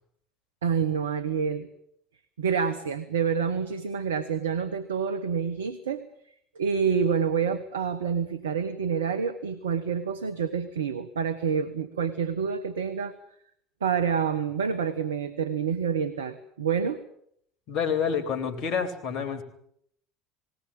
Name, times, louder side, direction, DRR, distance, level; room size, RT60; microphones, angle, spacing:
voice 1, 0.6-1.7 2.4-6.1 6.5-13.1 13.8-17.0, right 6 dB, 85° right, 12 dB, 1.1 m, -28 dB
voice 2, 17.7-19.4, left 7 dB, 55° left, 9 dB, 3.5 m, -28 dB
19.5 x 19.0 x 8.7 m, 0.69 s
hypercardioid pair, 70°, 0 cm